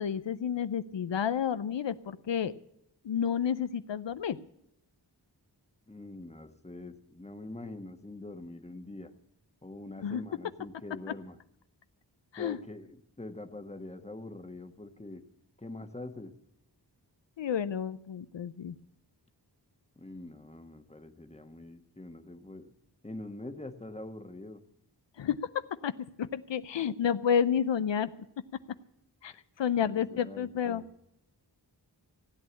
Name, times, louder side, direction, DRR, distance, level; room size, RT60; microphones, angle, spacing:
voice 1, 0.0-2.5 3.0-4.4 10.0-10.2 12.3-12.6 17.4-18.7 25.2-25.4 25.8-25.9 26.2-28.1 29.2-29.3 29.6-30.8, left 8 dB, 90° left, 13 dB, 0.6 m, -30 dB
voice 2, 5.9-9.1 9.6-11.4 12.4-15.2 15.6-16.3 20.0-22.7 23.0-24.6 29.7-30.9, left 2 dB, 15° left, 7 dB, 1.3 m, -44 dB
16.0 x 8.5 x 8.4 m, 0.77 s
wide cardioid pair, 55°, 42 cm